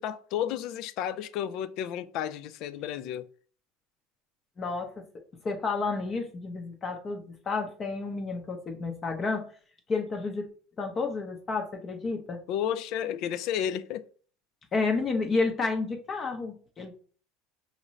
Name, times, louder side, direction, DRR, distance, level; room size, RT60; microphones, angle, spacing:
voice 1, 0.0-3.3 12.5-14.1, left 10 dB, 60° left, 0.3 m, -32 dB
voice 2, 4.6-4.9 5.4-9.4 9.9-10.5 10.8-12.4 14.7-16.9, left 4 dB, 30° left, 0.7 m, -30 dB
5.1 x 2.6 x 3.0 m
supercardioid pair, 120°, 0 cm